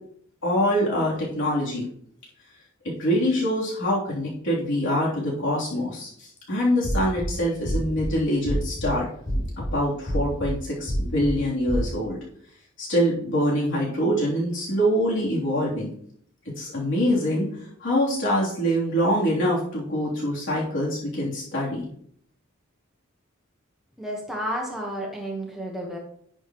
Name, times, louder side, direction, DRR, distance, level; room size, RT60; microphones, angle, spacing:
voice 1, 0.4-1.9 3.0-9.1 9.6-12.2 12.8-15.9 16.6-17.5 17.8-21.9, equal, 60° left, -6 dB, 3.3 m, -24 dB
sound 1, 6.8-7.3 7.6-8.1 8.5-8.9 9.3-9.7 10.1-10.5 10.9-11.3 11.7-11.9, equal, 25° left, 3.5 m, -27 dB
voice 2, 24.0-26.0, equal, ahead, -2 dB, 1.3 m, -31 dB
11.0 x 6.6 x 3.1 m, 0.64 s
head